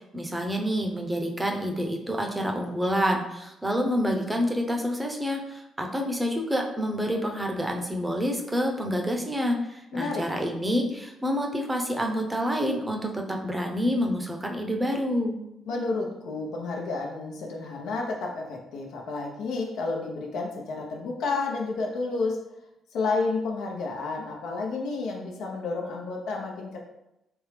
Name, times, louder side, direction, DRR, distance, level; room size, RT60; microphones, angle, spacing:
voice 1, 0.1-15.4, equal, 15° right, 2 dB, 0.6 m, -28 dB
voice 2, 9.9-10.5 15.6-22.4 22.9-26.8, left 3 dB, 85° left, 1 dB, 0.7 m, -31 dB
3.5 x 3.1 x 3.3 m, 0.86 s
cardioid pair, 90°, 0 cm